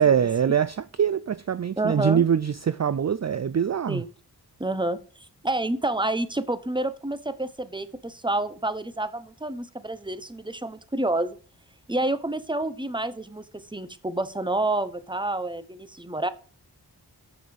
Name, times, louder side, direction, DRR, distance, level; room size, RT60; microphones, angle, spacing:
voice 1, 0.0-4.0, right 8 dB, 45° right, 0.4 m, -23 dB
voice 2, 1.8-2.2 3.9-4.1 4.6-5.0 5.4-11.4 11.9-16.3, right 2 dB, 10° right, 0.8 m, -28 dB
7.2 x 6.2 x 6.9 m
wide cardioid pair, 50°, 40 cm